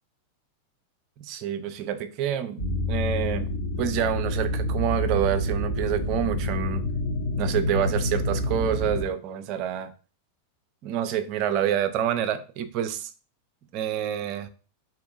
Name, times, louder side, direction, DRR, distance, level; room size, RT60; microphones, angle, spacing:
voice 1, 1.2-3.5 3.8-6.8 7.4-9.9 10.8-13.1 13.7-14.5, right 10 dB, 40° right, 0.4 m, -27 dB
sound 1, 2.6-9.0, left 1 dB, 55° left, 1.0 m, -27 dB
3.5 x 2.7 x 2.5 m
figure-of-eight pair, 90°, 0 cm